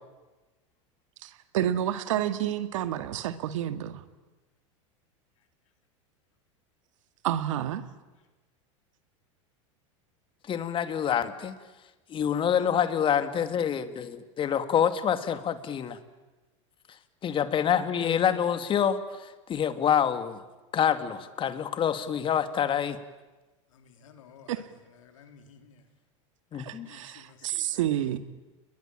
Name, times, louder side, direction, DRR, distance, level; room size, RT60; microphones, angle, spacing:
voice 1, 1.2-4.0 7.2-7.8 24.5-24.6 26.6-28.2, right 11 dB, 80° right, 2.0 m, -29 dB
voice 2, 10.5-11.6 12.1-16.0 17.2-20.4 20.7-23.0 26.5-26.9, left 8 dB, 30° left, 2.3 m, -27 dB
voice 3, 23.8-24.5 25.1-25.7 26.9-27.6, left 7 dB, 85° left, 3.8 m, -53 dB
30.0 x 21.5 x 8.8 m
supercardioid pair, 115°, 16 cm